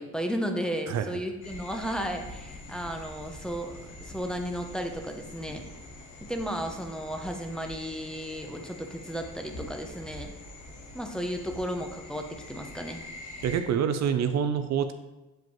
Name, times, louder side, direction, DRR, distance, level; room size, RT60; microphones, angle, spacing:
voice 1, 0.0-5.6 6.3-10.3 10.9-13.0, equal, 5° left, 3 dB, 0.8 m, -34 dB
voice 2, 0.9-1.2 13.4-14.9, right 8 dB, 65° right, 9 dB, 0.5 m, -26 dB
sound 1, 1.4-13.6, left 1 dB, 90° left, 1.2 m, -45 dB
7.6 x 4.9 x 3.1 m, 1.0 s
cardioid pair, 90°, 30 cm